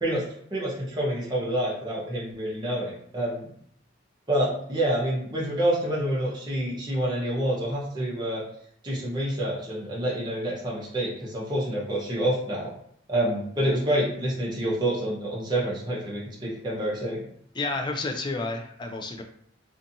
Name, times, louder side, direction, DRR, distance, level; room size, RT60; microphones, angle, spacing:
voice 1, 0.5-3.5 4.3-8.4 8.8-12.7 13.1-17.2, right 1 dB, 20° right, -6 dB, 0.7 m, -27 dB
voice 2, 17.5-19.2, left 3 dB, 25° left, 3 dB, 0.3 m, -30 dB
2.5 x 2.4 x 2.7 m, 0.66 s
head